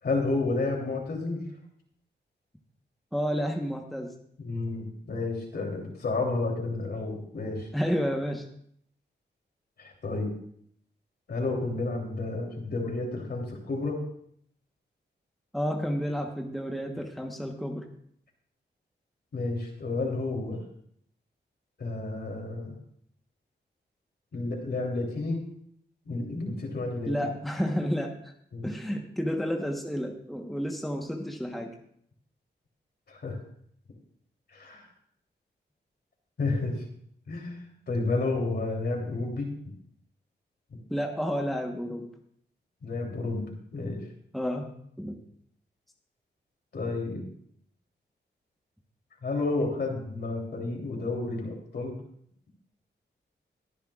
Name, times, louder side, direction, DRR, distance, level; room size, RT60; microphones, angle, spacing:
voice 1, 0.0-1.4 4.4-7.7 9.8-10.3 11.3-14.0 19.3-20.6 21.8-22.8 24.3-25.4 26.0-27.2 28.5-28.7 33.1-33.4 34.5-34.9 36.4-36.8 37.3-39.5 42.8-44.0 46.7-47.3 49.2-51.9, left 3 dB, 60° left, 0 dB, 3.2 m, -31 dB
voice 2, 3.1-4.1 7.7-8.5 15.5-17.9 27.1-28.3 28.6-31.7 40.9-42.1 44.3-45.2, equal, ahead, 2 dB, 1.1 m, -31 dB
21.5 x 10.0 x 2.4 m, 0.66 s
wide cardioid pair, 105°, 19 cm